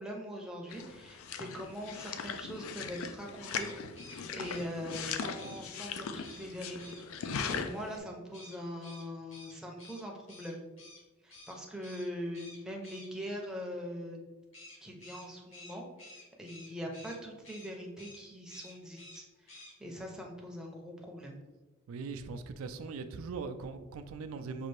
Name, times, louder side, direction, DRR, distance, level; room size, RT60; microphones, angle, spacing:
voice 1, 0.0-3.7 4.3-10.8 11.2-14.2 14.8-16.1 16.4-21.4, equal, 5° right, -1 dB, 0.5 m, -42 dB
sound 1, 0.7-8.0, left 6 dB, 85° left, 0.4 m, -39 dB
sound 2, 3.4-5.6 6.2-6.5 6.8-7.0 8.3-11.0 11.3-11.5 11.8-12.1 12.3-13.1 14.5-17.2 17.4-17.7 18.0-18.2 18.5-19.2 19.5-19.7, left 2 dB, 65° left, 1.4 m, -52 dB
voice 2, 21.9-24.7, right 4 dB, 80° right, 8 dB, 0.3 m, -40 dB
5.2 x 2.5 x 3.2 m, 1.2 s
head